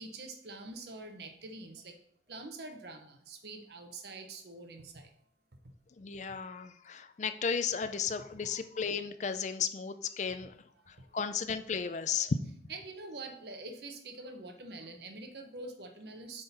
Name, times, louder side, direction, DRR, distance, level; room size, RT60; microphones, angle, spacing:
voice 1, 0.0-2.0 2.3-5.1 10.7-10.8 12.7-16.4, right 2 dB, 65° right, 5 dB, 1.0 m, -45 dB
voice 2, 6.0-10.5 11.1-12.4, left 6 dB, 40° left, 10 dB, 0.4 m, -34 dB
7.9 x 3.8 x 4.2 m, 0.65 s
head